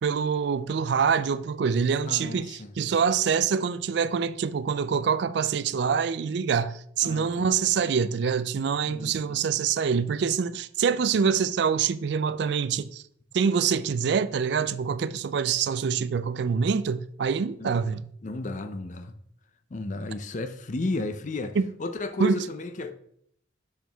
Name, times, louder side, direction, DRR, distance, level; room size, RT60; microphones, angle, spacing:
voice 1, 0.0-13.0 13.3-18.1 21.6-21.7 22.2-22.5, right 6 dB, 60° right, 0.3 m, -25 dB
voice 2, 2.1-2.7 7.0-7.5 8.8-9.4 17.6-17.9 18.2-19.1 19.7-22.9, left 2 dB, 40° left, 0.5 m, -33 dB
6.2 x 6.0 x 3.4 m
head